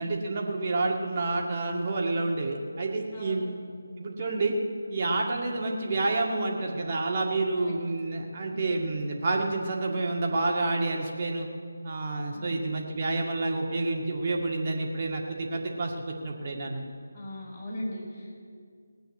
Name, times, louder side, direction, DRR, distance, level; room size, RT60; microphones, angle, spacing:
voice 1, 0.0-3.5 4.0-4.5 4.9-11.5 11.8-16.8, right 2 dB, 35° right, 0 dB, 2.0 m, -29 dB
voice 2, 3.1-3.4 7.6-7.7 8.5-8.6 12.3-12.5 17.1-18.4, left 1 dB, 35° left, -4 dB, 5.2 m, -39 dB
18.5 x 9.0 x 8.6 m, 2.1 s
figure-of-eight pair, 155°, 0 cm